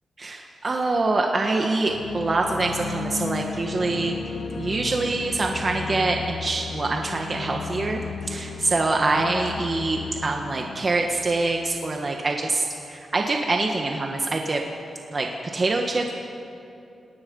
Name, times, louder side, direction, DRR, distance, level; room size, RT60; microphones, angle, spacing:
voice 1, 0.2-4.2 4.6-14.6 15.1-16.1, right 2 dB, 40° right, 2 dB, 1.6 m, -25 dB
sound 1, 1.9-11.9, left 5 dB, 85° left, 1.6 m, -35 dB
30.0 x 19.0 x 5.5 m, 2.7 s
cardioid pair, 95°, 0 cm